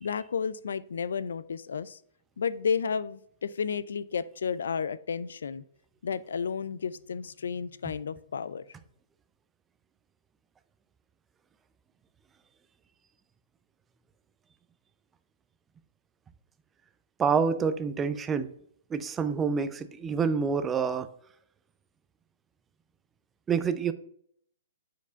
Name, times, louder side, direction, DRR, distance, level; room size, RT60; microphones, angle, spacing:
voice 1, 0.0-2.0 2.4-5.6 6.0-8.6, left 6 dB, 80° left, 16 dB, 0.4 m, -32 dB
voice 2, 17.2-18.5 18.9-21.1 23.5-23.9, right 6 dB, 15° right, 12 dB, 0.5 m, -27 dB
4.8 x 4.5 x 5.2 m, 0.64 s
hypercardioid pair, 135°, 0 cm